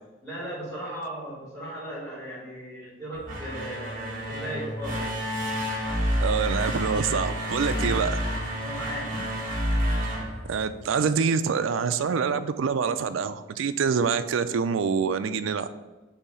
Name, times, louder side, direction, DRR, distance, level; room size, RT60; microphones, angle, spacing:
voice 1, 0.2-5.1 7.8-8.1 8.6-9.2, right 1 dB, ahead, -6 dB, 2.0 m, -37 dB
sound 1, 3.1-11.1, equal, 45° right, 1.2 m, -29 dB
voice 2, 6.2-8.1 10.5-15.7, right 6 dB, 85° right, 12 dB, 0.4 m, -26 dB
6.9 x 2.8 x 5.4 m, 1.1 s
head